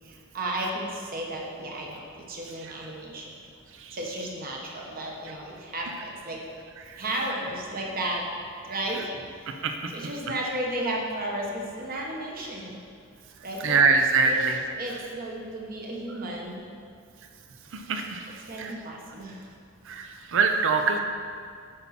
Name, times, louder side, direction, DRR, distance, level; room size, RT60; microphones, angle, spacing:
voice 1, 0.0-3.3 3.9-6.4 7.0-8.3 8.6-9.2 9.9-12.8 13.4-13.8 14.2-16.6 18.4-19.4, right 1 dB, 40° right, -1 dB, 1.2 m, -33 dB
voice 2, 13.6-14.5 17.9-18.2 18.6-18.7 19.9-20.1 20.3-21.0, right 4 dB, 60° right, 5 dB, 0.6 m, -22 dB
8.8 x 5.5 x 4.3 m, 2.3 s
head